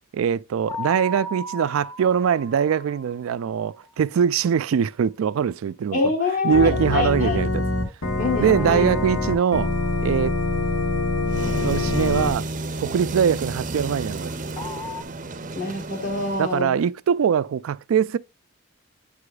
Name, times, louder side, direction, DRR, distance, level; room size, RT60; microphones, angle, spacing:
voice 1, 0.1-6.0 6.4-7.6 8.4-9.7 10.0-10.4 11.6-12.5 12.8-14.3 16.4-18.2, right 7 dB, 85° right, 0.3 m, -22 dB
sound 1, 0.7-3.6 8.5-10.7 14.6-15.0, left 1 dB, 20° left, 0.8 m, -37 dB
voice 2, 5.9-7.4 8.2-8.9 15.6-16.8, left 3 dB, 40° left, 1.2 m, -25 dB
Organ, 6.5-12.3, left 2 dB, 90° left, 1.4 m, -24 dB
sound 2, 11.3-16.6, right 2 dB, 40° right, 0.5 m, -32 dB
8.4 x 4.8 x 2.3 m
head